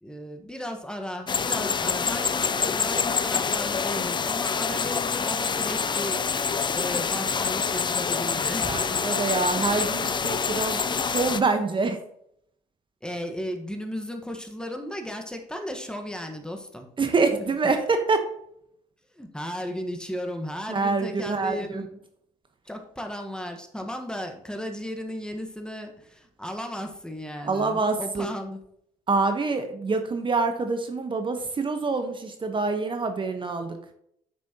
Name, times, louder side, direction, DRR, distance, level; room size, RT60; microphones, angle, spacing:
voice 1, 0.0-9.0 13.0-16.9 19.1-22.0 22.6-28.6, equal, 5° left, 5 dB, 1.3 m, -35 dB
sound 1, 1.3-11.4, left 6 dB, 30° left, 0.5 m, -26 dB
voice 2, 8.6-12.0 17.0-18.2 20.7-21.8 27.5-28.3 29.1-33.8, right 4 dB, 35° right, 6 dB, 1.1 m, -26 dB
8.5 x 6.0 x 2.9 m, 0.71 s
supercardioid pair, 65°, 15 cm